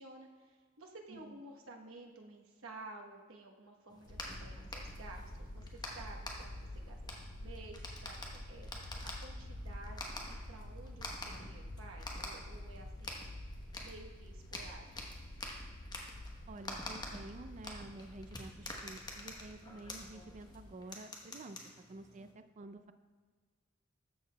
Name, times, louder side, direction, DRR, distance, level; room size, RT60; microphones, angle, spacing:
voice 1, 0.0-13.2 13.8-15.2 22.2-22.4, right 2 dB, 85° right, 1 dB, 1.0 m, -53 dB
voice 2, 1.1-1.4 16.5-21.6 21.9-22.9, right 2 dB, 35° right, 10 dB, 0.4 m, -50 dB
sound 1, 3.9-22.3, left 2 dB, 20° left, 0.9 m, -48 dB
sound 2, 4.1-20.7, left 1 dB, 85° left, 0.9 m, -48 dB
13.0 x 6.7 x 2.2 m, 1.5 s
head